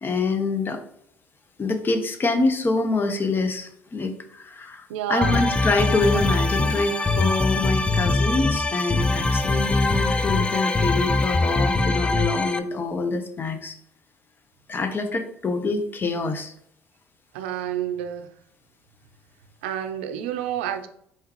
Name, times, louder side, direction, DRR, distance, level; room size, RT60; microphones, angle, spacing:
voice 1, 0.0-0.8 1.6-13.8 14.7-16.5, left 3 dB, 35° left, 7 dB, 0.8 m, -26 dB
voice 2, 4.9-5.4 17.3-18.3 19.6-20.9, right 10 dB, 80° right, 8 dB, 0.4 m, -29 dB
sound 1, 5.2-12.6, left 3 dB, 15° left, 0.4 m, -22 dB
4.5 x 3.6 x 3.0 m, 0.69 s
hypercardioid pair, 65°, 6 cm